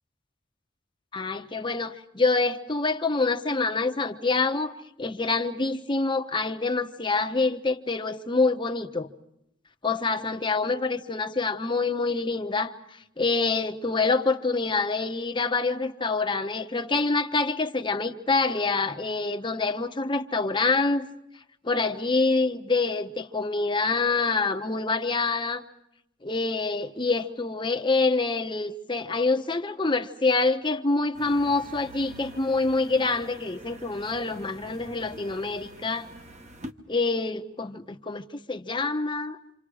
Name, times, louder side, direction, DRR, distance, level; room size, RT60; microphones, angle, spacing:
voice 1, 1.1-9.1 9.8-21.1 21.6-25.6 26.2-36.1 36.9-39.4, left 3 dB, 25° left, 1.0 m, -26 dB
sound 1, 31.1-36.7, right 1 dB, 35° right, 1.3 m, -46 dB
28.5 x 27.0 x 4.9 m
head